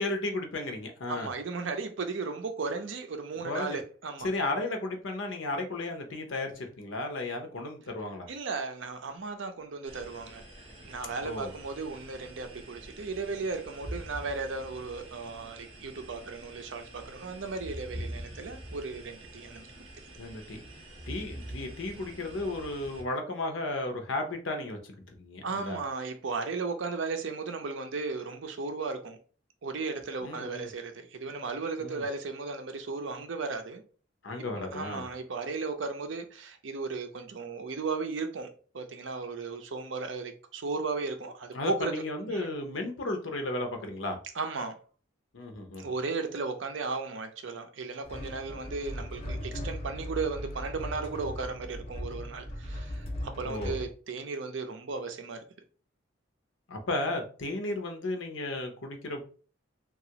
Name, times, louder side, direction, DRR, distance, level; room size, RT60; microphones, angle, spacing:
voice 1, 0.0-1.3 3.4-3.8 4.2-8.3 11.2-11.5 20.2-20.6 21.1-25.8 30.2-30.7 31.8-32.0 34.2-35.1 41.5-44.2 45.3-45.9 53.4-53.8 56.7-59.2, left 2 dB, 80° left, 0.7 m, -34 dB
voice 2, 1.1-4.3 8.3-10.4 10.8-19.7 25.4-29.2 29.6-33.8 34.5-41.9 42.3-42.5 44.3-44.8 45.8-55.4, right 4 dB, 70° right, 0.5 m, -35 dB
sound 1, 9.8-23.0, right 1 dB, 30° right, 1.0 m, -45 dB
sound 2, 48.0-53.9, equal, 30° left, 0.8 m, -38 dB
2.9 x 2.4 x 2.8 m
head